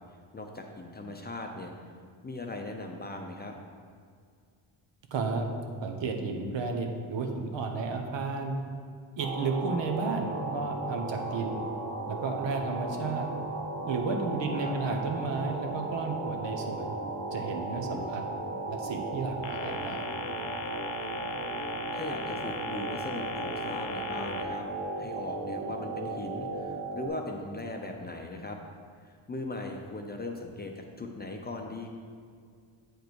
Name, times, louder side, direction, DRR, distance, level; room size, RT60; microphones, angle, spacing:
voice 1, 0.3-1.7 2.2-3.5 14.5-14.8 17.9-18.2 21.9-24.7 25.0-28.6 29.0-31.9, left 2 dB, 20° left, 2 dB, 0.6 m, -39 dB
voice 2, 5.1-5.5 5.8-8.6 9.2-11.6 12.1-13.3 13.8-17.0 17.3-18.2 18.7-20.0, right 4 dB, 65° right, 3 dB, 1.0 m, -32 dB
sound 1, 9.2-27.1, right 2 dB, 40° right, 1.5 m, -36 dB
sound 2, 19.4-24.4, left 6 dB, 85° left, 0.8 m, -39 dB
7.9 x 5.1 x 4.6 m, 2.1 s
cardioid pair, 105°, 47 cm